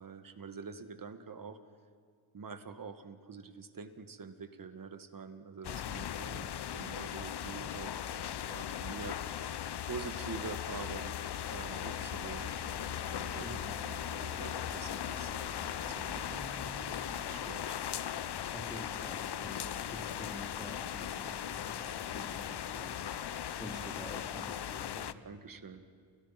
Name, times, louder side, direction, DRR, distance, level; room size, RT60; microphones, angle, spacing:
voice 1, 0.0-1.6 2.3-9.5 9.9-11.2 11.5-12.5 13.1-16.5 17.3-17.8 25.2-26.0, right 5 dB, 45° right, 9 dB, 1.9 m, -46 dB
sound 1, 5.6-25.1, left 10 dB, 55° left, 0.9 m, -38 dB
sound 2, 11.6-17.6, right 1 dB, 5° right, 2.2 m, -50 dB
voice 2, 18.5-25.2, left 1 dB, 10° left, 1 dB, 3.7 m, -48 dB
29.5 x 29.0 x 6.0 m, 2.2 s
cardioid pair, 85°, 47 cm